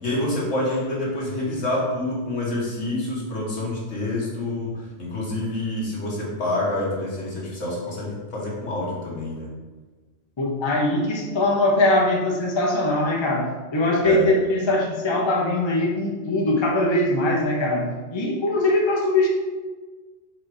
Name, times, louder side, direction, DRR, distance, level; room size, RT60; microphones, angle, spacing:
voice 1, 0.0-9.5 14.0-14.3, left 1 dB, 70° left, -5 dB, 2.0 m, -27 dB
voice 2, 10.4-17.8 18.1-19.3, left 1 dB, 25° left, -2 dB, 0.9 m, -21 dB
4.9 x 4.4 x 4.9 m, 1.3 s
omnidirectional pair, 1.3 m